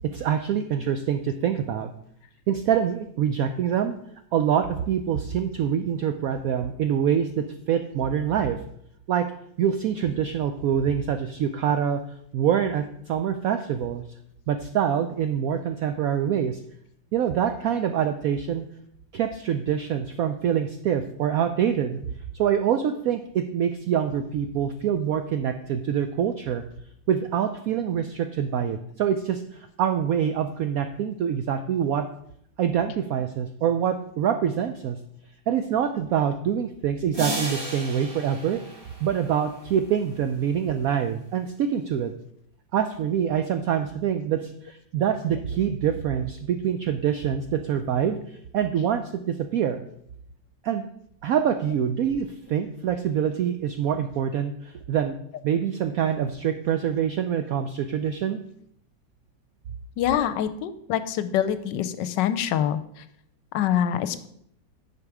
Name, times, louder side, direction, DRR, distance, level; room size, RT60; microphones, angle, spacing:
voice 1, 0.1-1.9 2.5-4.0 4.3-8.6 9.1-9.2 9.6-12.0 12.3-14.0 14.5-16.6 17.1-18.6 19.1-22.0 22.3-26.6 27.1-32.1 32.6-35.0 35.5-38.6 39.0-42.1 42.7-49.8 50.6-50.8 51.2-55.1 55.4-58.4, right 8 dB, 80° right, 8 dB, 0.8 m, -25 dB
sound 1, 37.1-39.6, right 1 dB, 30° right, 2.7 m, -34 dB
voice 2, 60.0-62.8 63.5-64.3, left 10 dB, 75° left, 13 dB, 1.2 m, -25 dB
9.5 x 4.9 x 4.8 m, 0.71 s
omnidirectional pair, 2.0 m